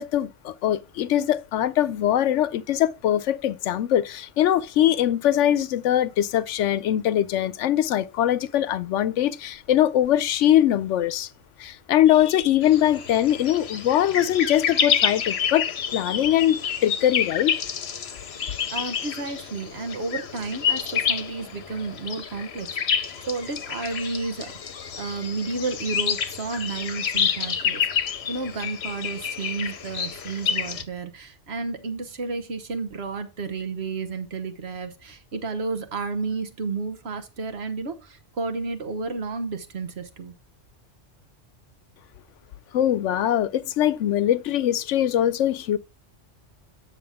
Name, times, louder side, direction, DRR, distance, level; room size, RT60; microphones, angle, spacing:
voice 1, 0.0-11.3 11.6-15.6 15.9-17.6 42.7-45.8, left 11 dB, 85° left, 0.9 m, -22 dB
sound 1, 12.6-30.8, left 7 dB, 65° left, 1.0 m, -28 dB
voice 2, 18.7-24.5 24.9-40.3, right 4 dB, 60° right, 1.3 m, -32 dB
8.7 x 6.4 x 3.6 m
omnidirectional pair, 1.2 m